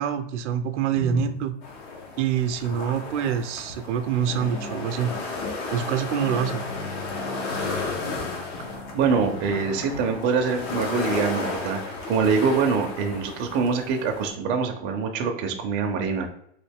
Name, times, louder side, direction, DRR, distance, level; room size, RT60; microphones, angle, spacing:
voice 1, 0.0-1.5 2.2-5.1 5.7-6.6, right 9 dB, 75° right, 7 dB, 0.5 m, -26 dB
sound 1, 0.6-1.8 2.8-3.1 3.6-10.0, left 2 dB, 20° left, 0.4 m, -38 dB
sound 2, 1.6-14.3, left 3 dB, 60° left, 1.0 m, -33 dB
voice 2, 8.9-16.3, right 5 dB, 30° right, 3 dB, 0.5 m, -24 dB
3.1 x 2.6 x 3.4 m, 0.71 s
supercardioid pair, 140°, 36 cm